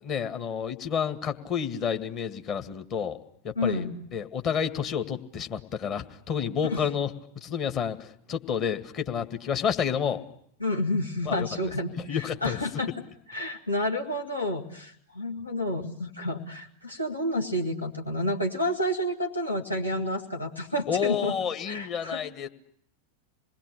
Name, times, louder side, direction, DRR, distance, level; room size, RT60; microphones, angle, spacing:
voice 1, 0.0-3.2 3.4-3.9 4.1-7.1 7.4-10.2 11.3-11.5 11.9-12.6 20.9-22.5, left 7 dB, 35° left, 7 dB, 2.1 m, -30 dB
voice 2, 3.6-3.9 6.6-6.8 10.6-12.9 13.3-21.3 21.7-22.2, left 1 dB, 85° left, 0 dB, 2.4 m, -30 dB
27.5 x 20.5 x 10.0 m, 0.71 s
figure-of-eight pair, 90°, 0 cm